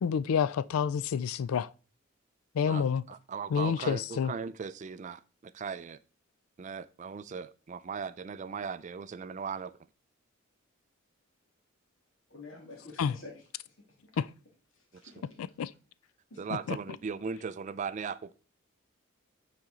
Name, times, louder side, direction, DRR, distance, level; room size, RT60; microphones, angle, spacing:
voice 1, 0.0-1.7 2.5-3.0 3.5-4.3 13.0-13.1 14.2-14.3 15.6-15.7 16.7-16.8, left 7 dB, 85° left, 0.4 m, -28 dB
voice 2, 2.7-6.0 6.6-9.7 16.4-18.3, right 6 dB, 35° right, 0.3 m, -38 dB
voice 3, 12.3-13.7 14.8-15.2 16.3-16.6, left 2 dB, 65° left, 2.0 m, -49 dB
8.9 x 4.3 x 3.7 m
head